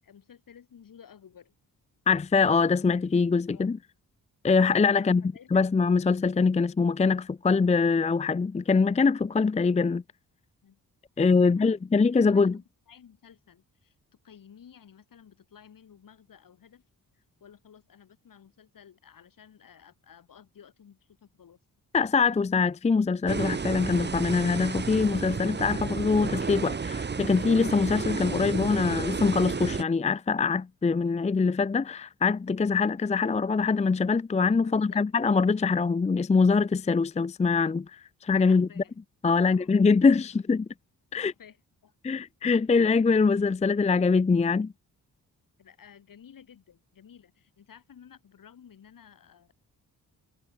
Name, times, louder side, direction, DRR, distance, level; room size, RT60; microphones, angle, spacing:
voice 1, 0.0-1.5 3.5-3.8 5.0-5.7 10.6-10.8 11.2-11.8 12.2-13.9 14.2-16.8 17.1-21.6 34.6-35.1 38.5-39.0 39.4-39.7 40.3-40.4 41.2-42.2 45.6-49.5, left 8 dB, 65° left, 6.6 m, -54 dB
voice 2, 2.1-3.8 4.4-5.2 5.5-10.0 11.2-12.6 21.9-38.7 39.2-40.7 41.1-41.3 42.0-44.7, left 4 dB, 20° left, 0.5 m, -23 dB
sound 1, 23.3-29.8, right 5 dB, 30° right, 1.3 m, -32 dB
wide cardioid pair, 135°, 36 cm